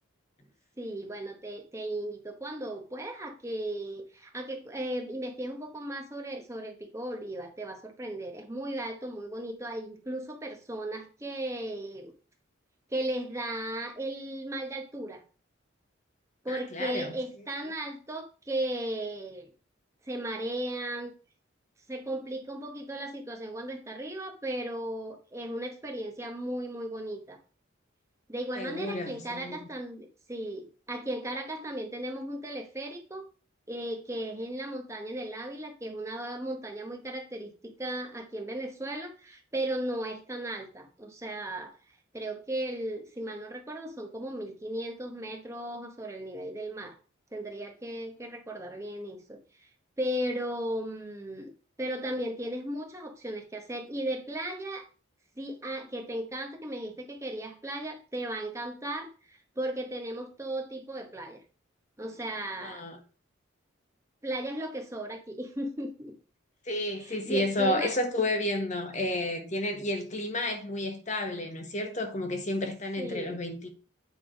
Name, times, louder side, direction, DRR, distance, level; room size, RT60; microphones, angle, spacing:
voice 1, 0.8-12.1 12.9-15.2 16.4-19.5 20.1-21.1 21.9-27.4 28.3-33.3 33.7-41.8 42.1-46.9 47.3-49.7 50.0-51.5 51.8-54.9 55.4-61.4 62.0-62.8 64.2-66.2 67.0-67.9 73.0-73.4, right 1 dB, 15° right, 0.9 m, -36 dB
voice 2, 16.5-17.1 28.6-29.7 62.6-63.0 66.6-73.7, left 1 dB, 35° left, 1.1 m, -31 dB
9.1 x 3.5 x 5.0 m
head